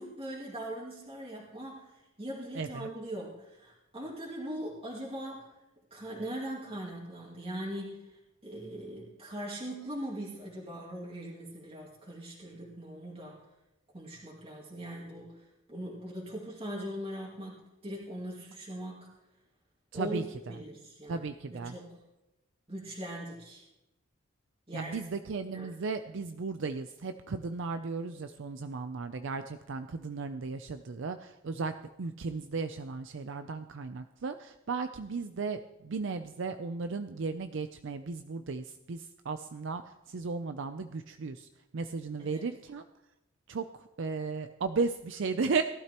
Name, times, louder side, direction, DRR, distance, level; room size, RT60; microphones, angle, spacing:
voice 1, 0.0-5.5 5.9-13.4 13.9-19.2 19.9-20.2 20.5-22.0 22.7-23.6 24.7-24.9 25.5-25.7 42.2-42.4, right 1 dB, 30° right, -4 dB, 2.2 m, -41 dB
voice 2, 2.5-2.9 19.9-20.2 21.1-21.7 24.7-31.7 32.0-39.8 40.1-41.5 41.7-42.8 43.5-43.7 44.0-45.6, right 4 dB, 65° right, 9 dB, 0.5 m, -35 dB
18.0 x 12.0 x 3.0 m, 0.96 s
head